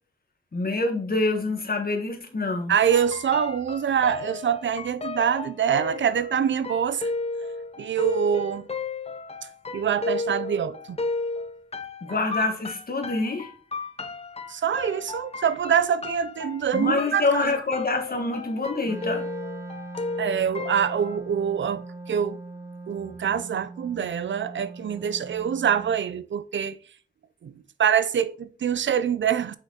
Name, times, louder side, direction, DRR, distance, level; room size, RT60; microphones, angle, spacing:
voice 1, 0.5-2.7 12.0-13.5 16.7-19.3, left 3 dB, 45° left, 1.5 m, -26 dB
voice 2, 2.7-7.1 7.8-8.7 9.7-11.0 14.5-17.5 20.2-22.4 22.9-26.7 27.4-27.5 27.8-29.6, right 8 dB, 65° right, 0.5 m, -25 dB
sound 1, 2.9-21.2, left 3 dB, 30° left, 0.6 m, -34 dB
Wind instrument woodwind instrument, 18.8-26.0, right 3 dB, 15° right, 1.0 m, -40 dB
5.8 x 5.6 x 2.9 m
cardioid pair, 60°, 21 cm